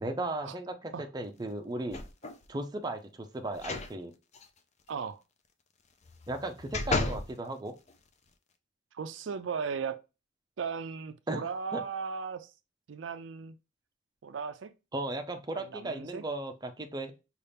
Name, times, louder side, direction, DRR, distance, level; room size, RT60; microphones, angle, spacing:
voice 1, 0.0-2.0 2.5-4.1 6.3-7.8 11.3-11.4 11.7-11.8 14.9-17.1, right 2 dB, 20° right, 0.5 m, -36 dB
sound 1, 1.9-2.5 3.5-3.9 4.3-4.4 6.0-7.3 7.9-8.0, left 3 dB, 35° left, 0.5 m, -33 dB
voice 2, 4.9-5.2 8.9-10.0 10.6-12.5 12.9-13.6 14.2-14.7 15.5-16.2, right 6 dB, 80° right, 0.4 m, -36 dB
5.5 x 2.4 x 3.4 m
head